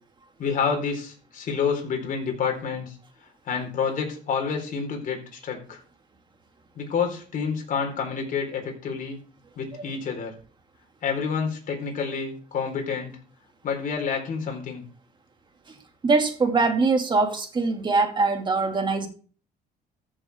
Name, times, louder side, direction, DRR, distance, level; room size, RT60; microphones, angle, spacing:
voice 1, 0.4-3.0 3.5-5.8 6.8-9.2 9.6-10.3 11.0-13.2 13.6-14.8, left 6 dB, 55° left, 4.1 m, -28 dB
voice 2, 16.0-19.1, right 3 dB, 25° right, 2.3 m, -22 dB
14.5 x 7.0 x 3.5 m
cardioid pair, 110°, 17 cm